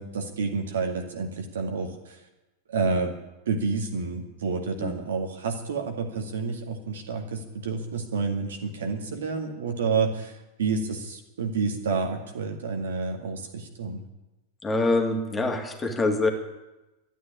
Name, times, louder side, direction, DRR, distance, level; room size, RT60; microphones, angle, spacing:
voice 1, 0.0-2.2 2.7-3.1 3.5-14.0, right 4 dB, 60° right, 4 dB, 2.1 m, -29 dB
voice 2, 14.6-16.3, left 2 dB, 15° left, 3 dB, 2.2 m, -25 dB
12.5 x 9.4 x 9.9 m, 1.0 s
figure-of-eight pair, 90°, 0 cm